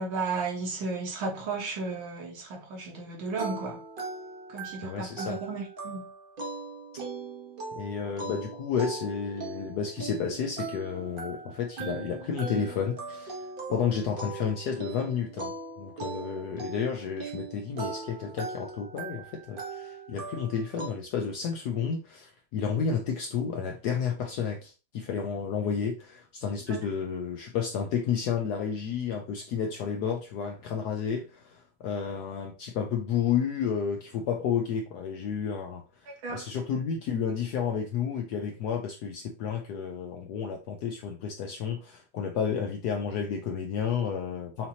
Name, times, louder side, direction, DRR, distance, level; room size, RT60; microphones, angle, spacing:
voice 1, 0.0-3.8 4.5-6.1 26.7-26.8 36.2-36.4, right 3 dB, 75° right, 2.0 m, -34 dB
sound 1, 3.4-20.9, right 3 dB, 50° right, 0.6 m, -39 dB
voice 2, 4.8-5.4 7.8-13.4 13.7-15.5 15.8-35.8 36.3-44.7, left 7 dB, 75° left, 0.9 m, -31 dB
5.8 x 2.7 x 2.7 m
omnidirectional pair, 2.2 m